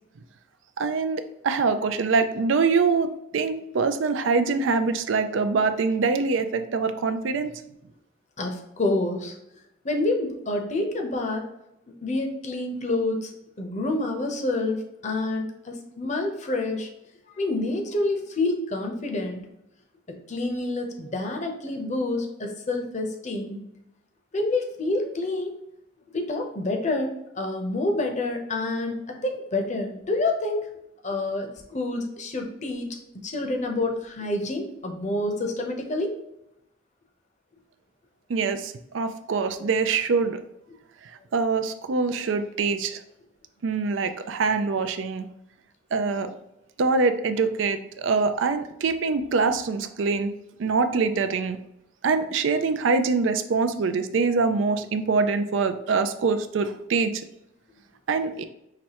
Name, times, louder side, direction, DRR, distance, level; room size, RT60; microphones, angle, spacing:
voice 1, 0.8-7.5 38.3-40.4 41.3-43.0 43.6-45.3 45.9-46.3 46.8-50.3 50.6-51.6 52.0-57.1 58.1-58.4, right 4 dB, 80° right, 9 dB, 0.4 m, -24 dB
voice 2, 8.4-9.3 9.8-11.4 11.9-13.3 13.6-16.9 17.3-19.4 20.1-23.6 24.3-25.6 26.1-29.0 29.2-30.7 31.0-32.9 33.2-36.2, left 2 dB, 40° left, 3 dB, 0.7 m, -28 dB
5.8 x 3.1 x 2.9 m, 0.84 s
head